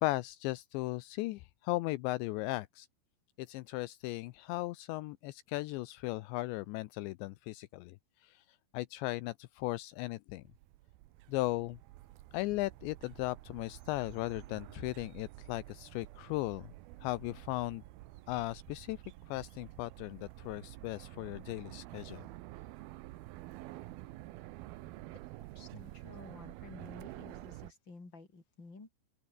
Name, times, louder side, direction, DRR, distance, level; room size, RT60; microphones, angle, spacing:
voice 1, 0.0-2.9 3.4-8.0 8.2-8.4 8.7-10.4 11.3-11.8 12.3-16.7 17.0-17.8 18.3-19.0 19.3-22.2, left 19 dB, 80° left, 2.9 m, -37 dB
sound 1, 10.4-27.7, right 17 dB, 75° right, 2.3 m, -49 dB
voice 2, 25.4-29.0, left 3 dB, 25° left, 6.0 m, -52 dB
open air
omnidirectional pair, 5.3 m